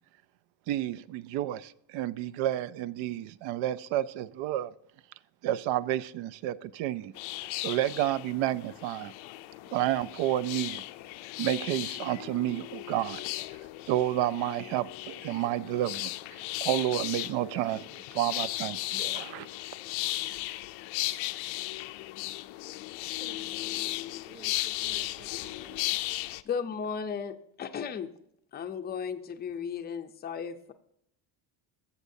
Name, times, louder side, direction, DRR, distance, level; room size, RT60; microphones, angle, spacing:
voice 1, 0.7-4.7 5.4-7.1 7.6-9.1 9.7-10.8 11.4-13.2 13.9-19.5, right 13 dB, 75° right, 0.5 m, -30 dB
sound 1, 7.1-26.4, left 18 dB, 85° left, 0.5 m, -36 dB
voice 2, 23.2-26.0, right 4 dB, 25° right, 1.0 m, -53 dB
voice 3, 26.4-28.1 28.5-30.7, left 6 dB, 20° left, 0.4 m, -35 dB
14.5 x 7.1 x 2.7 m
cardioid pair, 150°, 46 cm